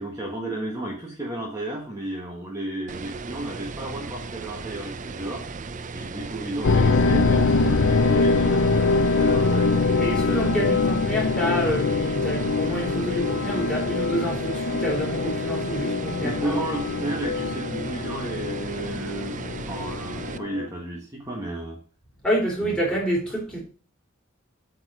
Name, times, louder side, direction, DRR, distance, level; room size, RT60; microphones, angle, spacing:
voice 1, 0.0-5.4 5.9-9.7 16.2-21.8, right 1 dB, 15° right, 1.6 m, -33 dB
sound 1, 2.9-20.4, right 4 dB, 35° right, 0.5 m, -36 dB
sound 2, 6.6-20.7, left 3 dB, 60° left, 0.5 m, -24 dB
voice 2, 10.0-16.6 22.2-23.6, equal, 5° left, 3.7 m, -27 dB
8.5 x 4.7 x 6.3 m
head